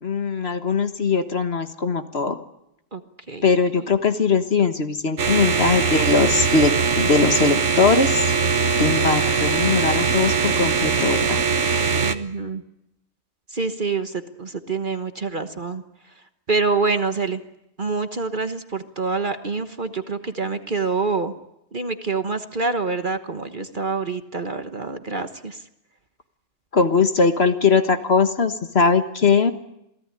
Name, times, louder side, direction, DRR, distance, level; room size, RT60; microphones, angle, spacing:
voice 1, 0.0-2.4 3.4-8.3 8.8-11.4 26.7-29.5, left 4 dB, 50° left, 8 dB, 1.6 m, -20 dB
voice 2, 3.3-3.8 12.0-12.6 13.5-17.4 17.8-21.3 21.7-25.6, right 4 dB, 40° right, 9 dB, 1.3 m, -26 dB
sound 1, 5.2-12.1, right 5 dB, 55° right, 1.6 m, -21 dB
27.5 x 18.5 x 9.9 m, 0.84 s
omnidirectional pair, 1.4 m